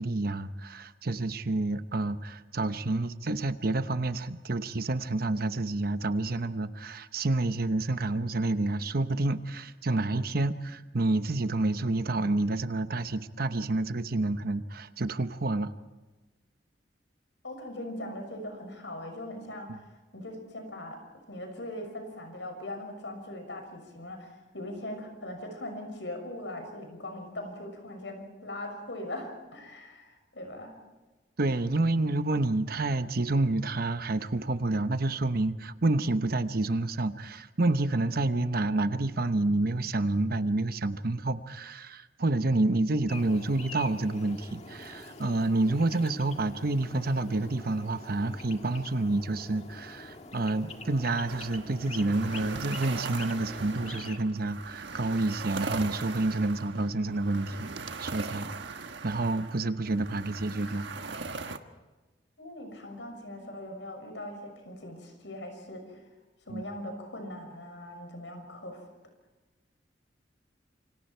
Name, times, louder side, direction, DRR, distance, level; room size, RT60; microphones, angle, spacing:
voice 1, 0.0-15.7 31.4-57.7 58.0-58.5 59.0-60.9 66.5-66.6, right 2 dB, 55° right, 11 dB, 1.0 m, -29 dB
voice 2, 17.4-19.8 20.1-21.0 21.3-30.7 59.8-60.1 62.4-66.0 66.5-68.8, left 1 dB, 90° left, 5 dB, 6.4 m, -40 dB
sound 1, 43.1-54.2, left 3 dB, 40° left, 1.8 m, -45 dB
sound 2, 51.3-61.6, right 4 dB, 85° right, 1.3 m, -40 dB
28.0 x 25.5 x 4.5 m, 1.2 s
head